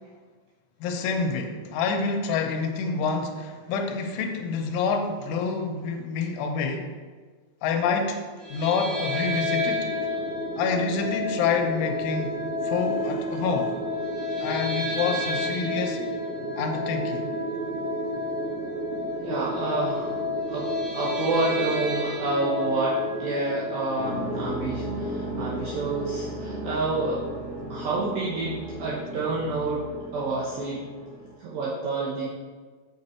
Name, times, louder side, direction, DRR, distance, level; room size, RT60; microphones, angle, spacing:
voice 1, 0.8-6.9 7.6-8.2 8.5-9.9 10.6-13.9 14.4-16.0 16.6-17.3, left 5 dB, 85° left, 4 dB, 3.3 m, -27 dB
sound 1, 8.4-24.5, left 1 dB, 55° right, 2.0 m, -30 dB
voice 2, 19.2-20.2 20.5-27.2 27.7-29.9 30.1-30.8 31.4-32.3, right 2 dB, 80° right, -5 dB, 2.1 m, -29 dB
sound 2, 24.0-31.3, equal, 50° left, 1.0 m, -35 dB
8.0 x 6.0 x 4.3 m, 1.4 s
omnidirectional pair, 5.4 m